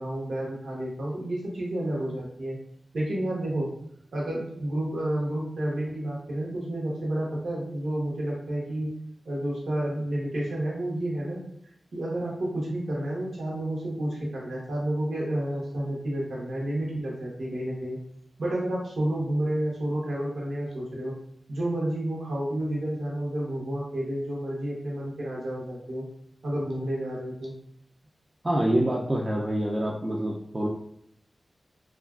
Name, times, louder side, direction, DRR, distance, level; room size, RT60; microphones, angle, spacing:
voice 1, 0.0-2.6 2.9-3.7 4.1-8.9 9.2-11.4 11.9-18.0 18.4-21.1 21.5-26.0 26.4-27.5, right 1 dB, 85° right, -4 dB, 0.9 m, -30 dB
voice 2, 28.4-30.7, right 1 dB, 35° right, -3 dB, 0.4 m, -26 dB
2.9 x 2.4 x 2.3 m, 0.71 s
wide cardioid pair, 70°, 0 cm